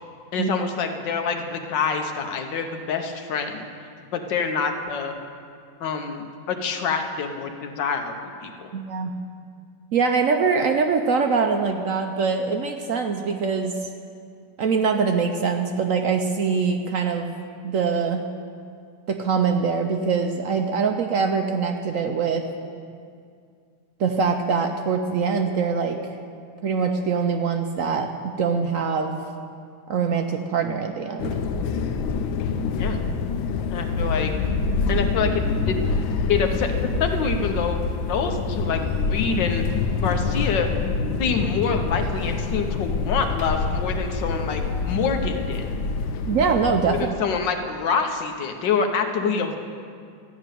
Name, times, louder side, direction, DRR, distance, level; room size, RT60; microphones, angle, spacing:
voice 1, 0.3-3.7 4.1-5.1 5.8-8.2 8.4-8.7 32.7-33.0 33.7-34.3 34.9-35.8 36.3-37.8 38.1-39.7 40.0-40.7 41.2-45.7 46.9-49.6, left 5 dB, 70° left, 5 dB, 1.6 m, -26 dB
voice 2, 8.7-9.1 9.9-13.7 14.6-17.3 17.6-18.2 19.1-22.4 24.0-26.1 26.6-29.2 29.9-31.4 46.3-47.2, right 5 dB, 70° right, 4 dB, 0.7 m, -23 dB
sound 1, 31.2-47.1, left 4 dB, 85° left, 1.4 m, -26 dB
13.5 x 6.1 x 9.1 m, 2.3 s
omnidirectional pair, 2.1 m